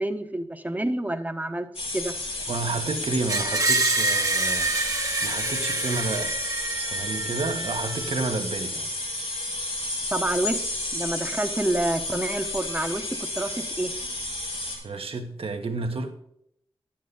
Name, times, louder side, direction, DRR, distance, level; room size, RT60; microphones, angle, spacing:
voice 1, 0.0-2.1 10.1-13.9, right 1 dB, 15° right, 1.0 m, -28 dB
sound 1, 1.7-14.8, left 2 dB, 85° left, 4.8 m, -31 dB
voice 2, 2.5-4.7 5.2-6.4 6.7-8.9 14.8-16.1, right 3 dB, 70° right, 1.4 m, -30 dB
Screech, 3.3-8.3, right 3 dB, 35° right, 1.0 m, -27 dB
11.5 x 8.8 x 4.0 m
wide cardioid pair, 85°, 10 cm